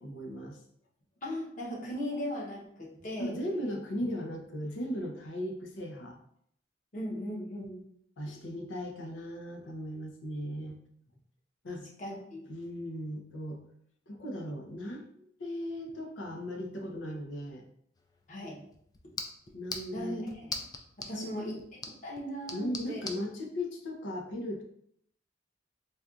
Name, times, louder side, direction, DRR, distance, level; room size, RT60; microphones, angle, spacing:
voice 1, 0.0-0.6 3.2-6.2 8.2-10.8 11.6-11.9 12.5-13.6 14.1-17.7 19.5-20.3 21.1-21.6 22.5-24.6, equal, 85° left, 2 dB, 0.6 m, -37 dB
voice 2, 1.2-3.4 6.9-7.8 11.7-12.5 18.3-18.6 19.9-20.5 21.0-21.6 22.0-23.0, equal, 45° left, -3 dB, 1.0 m, -38 dB
sound 1, 18.0-23.2, left 4 dB, 20° left, 0.3 m, -43 dB
4.1 x 2.3 x 2.5 m, 0.68 s
head